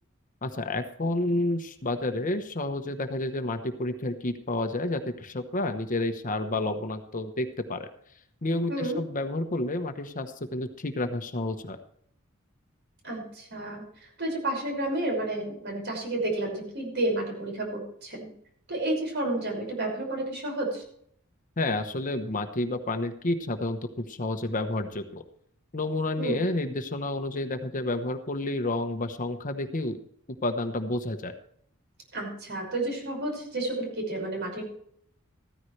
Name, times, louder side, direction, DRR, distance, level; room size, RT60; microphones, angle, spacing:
voice 1, 0.4-7.9 8.4-11.8 21.6-25.2 25.7-30.0 30.4-31.3, left 2 dB, 40° left, 7 dB, 1.0 m, -30 dB
voice 2, 13.0-13.8 14.2-18.3 18.7-20.8 26.2-26.3 32.1-34.6, right 1 dB, 55° right, 1 dB, 5.8 m, -31 dB
14.5 x 14.0 x 3.3 m, 0.66 s
head